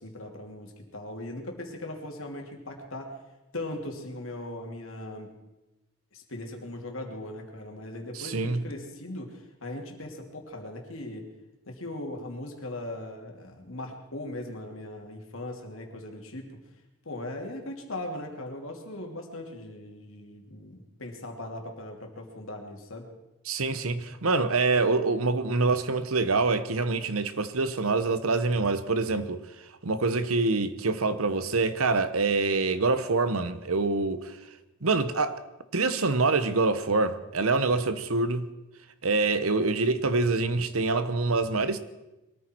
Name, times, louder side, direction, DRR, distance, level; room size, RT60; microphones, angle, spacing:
voice 1, 0.0-3.2 3.5-5.3 6.1-11.3 11.7-16.6 17.0-23.1, left 1 dB, 70° left, 2.8 m, -39 dB
voice 2, 8.1-8.6 23.5-29.4 29.8-34.3 34.8-35.4 35.7-38.5 39.0-41.8, right 3 dB, 85° right, 1.1 m, -25 dB
22.5 x 14.0 x 4.6 m
head